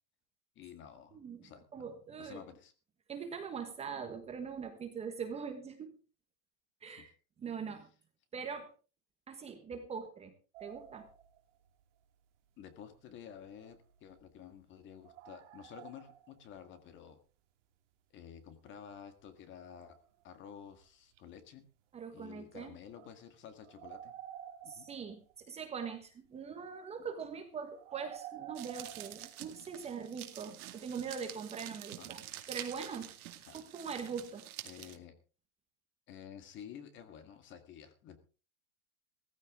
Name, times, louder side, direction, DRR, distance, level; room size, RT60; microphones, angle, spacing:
voice 1, 0.6-1.9 2.2-2.7 6.9-7.1 12.6-17.2 18.1-20.0 20.2-21.7 22.1-24.1 24.6-24.9 32.0-32.2 33.4-33.6 34.6-35.2 36.1-38.2, left 8 dB, 25° left, 9 dB, 1.8 m, -51 dB
voice 2, 1.1-2.4 3.1-5.9 6.8-7.1 7.4-7.9 8.3-8.7 9.3-10.3 10.6-11.1 21.9-22.8 24.7-25.2 25.5-32.2 32.5-33.1 33.5-34.4, right 6 dB, 15° right, 6 dB, 1.3 m, -42 dB
sound 1, 10.5-11.8 12.9-14.2 15.0-16.6 16.9-17.0 18.4-18.5 18.9-19.0 19.2-19.3 19.8-20.2 20.7-20.8 21.1-21.5 22.3-22.4 22.9-25.4 27.7-29.7, right 11 dB, 55° right, 1.9 m, -51 dB
sound 2, 28.5-35.0, right 13 dB, 75° right, 2.4 m, -47 dB
16.5 x 14.5 x 3.6 m, 0.36 s
supercardioid pair, 160°, 43 cm